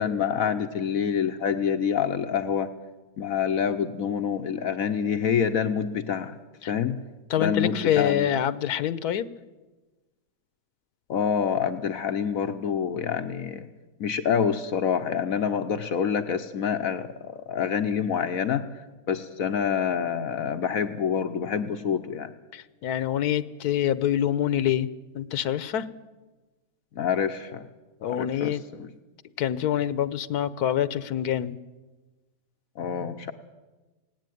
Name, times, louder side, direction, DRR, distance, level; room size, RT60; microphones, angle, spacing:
voice 1, 0.0-2.7 3.2-6.3 6.7-7.0 7.4-8.3 11.1-13.7 14.0-22.3 26.9-27.6 28.1-28.9 32.8-33.3, left 7 dB, 65° left, 9 dB, 1.3 m, -27 dB
voice 2, 7.3-9.3 22.5-24.9 25.1-25.9 28.0-28.6 29.4-31.6, left 10 dB, 85° left, 16 dB, 1.4 m, -26 dB
18.5 x 17.5 x 9.3 m, 1.2 s
omnidirectional pair, 1.6 m